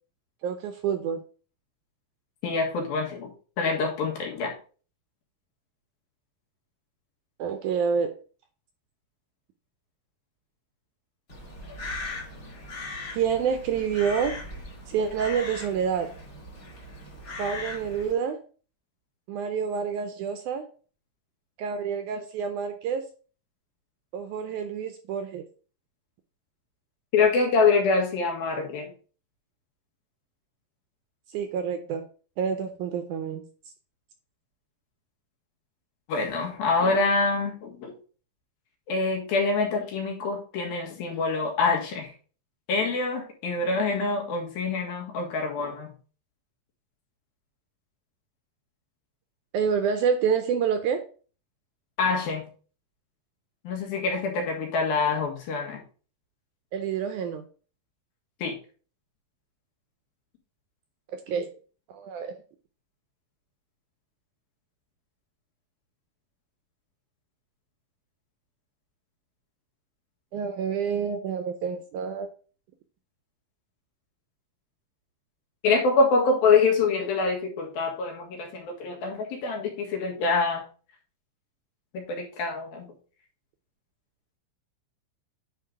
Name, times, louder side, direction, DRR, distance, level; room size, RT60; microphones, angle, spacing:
voice 1, 0.4-1.2 7.4-8.2 13.1-14.4 14.9-16.1 17.4-18.4 19.3-20.7 21.6-23.1 24.1-25.5 31.3-32.1 32.4-33.4 49.5-51.0 56.7-57.4 61.1-61.5 61.9-62.3 70.3-72.3, right 7 dB, 75° right, 7 dB, 1.9 m, -28 dB
voice 2, 2.4-3.3 3.6-4.5 27.1-28.9 36.1-37.9 38.9-42.1 42.7-45.9 52.0-52.4 53.7-55.8 58.4-58.5 75.6-80.6 82.1-82.9, left 4 dB, 85° left, 0 dB, 3.5 m, -25 dB
Crow, 11.3-18.1, left 2 dB, 30° left, 1.7 m, -39 dB
9.5 x 3.9 x 4.8 m, 0.39 s
omnidirectional pair, 4.1 m